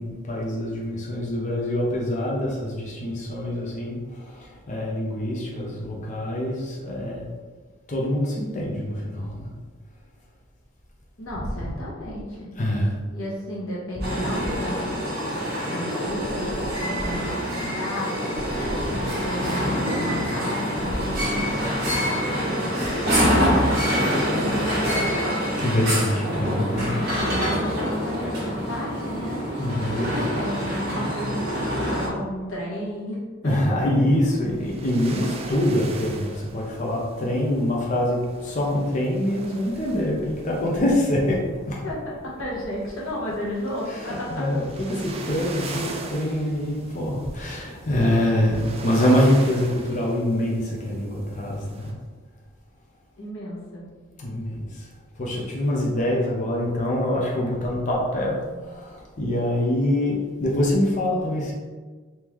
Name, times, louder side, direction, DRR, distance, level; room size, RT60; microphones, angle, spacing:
voice 1, 0.0-7.3 7.9-9.5 11.5-11.6 12.5-12.9 25.6-27.0 29.6-30.3 33.4-41.8 43.9-52.0 54.2-54.9 55.2-61.5, left 1 dB, 35° left, -3 dB, 0.5 m, -25 dB
voice 2, 11.2-12.5 13.1-15.1 15.6-23.9 24.3-25.4 27.1-29.5 29.8-33.7 41.8-42.0 42.2-44.5 53.2-53.9, left 1 dB, 80° left, -5 dB, 1.2 m, -33 dB
sound 1, 14.0-32.1, equal, 50° right, 1.2 m, -25 dB
sound 2, 33.5-51.9, right 2 dB, 30° right, 0.3 m, -41 dB
3.6 x 2.8 x 3.0 m, 1.4 s
head